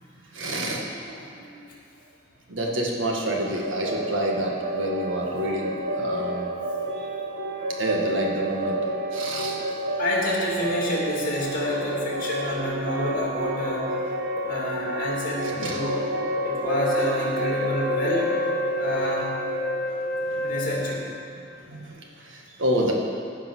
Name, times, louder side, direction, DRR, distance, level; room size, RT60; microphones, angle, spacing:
voice 1, 0.3-1.7 2.5-6.5 6.9-7.1 7.8-9.6 14.3-14.6 15.4-17.1 20.0-20.5 21.7-22.9, equal, 75° right, -1 dB, 1.7 m, -29 dB
sound 1, 3.4-21.1, right 1 dB, 60° right, 1.0 m, -30 dB
voice 2, 7.2-7.7 9.9-13.9 14.4-16.0 16.4-18.3 18.8-19.3 20.4-21.1, left 1 dB, 45° left, -4 dB, 2.8 m, -28 dB
Wind instrument woodwind instrument, 16.7-21.4, left 1 dB, 10° left, 0.7 m, -29 dB
15.0 x 5.3 x 6.2 m, 2.6 s
head